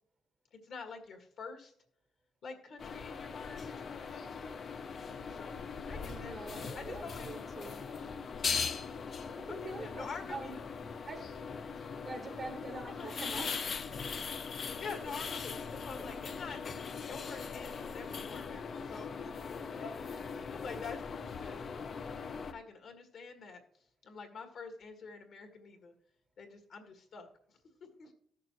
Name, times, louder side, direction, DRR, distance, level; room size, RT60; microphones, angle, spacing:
voice 1, 0.5-1.7 2.4-4.6 5.3-6.4 6.7-7.3 9.5-10.7 12.9-13.1 14.8-16.6 17.0-21.6 22.5-23.6 24.0-25.9 26.4-27.3 28.0-28.1, left 5 dB, 60° left, 1.9 m, -47 dB
sound 1, 2.8-22.5, left 5 dB, 40° left, 0.6 m, -40 dB
voice 2, 6.0-7.9 9.3-10.6 11.1-11.3 12.0-13.7, right 3 dB, 30° right, 0.9 m, -45 dB
16.0 x 6.7 x 3.1 m
cardioid pair, 145°, 0 cm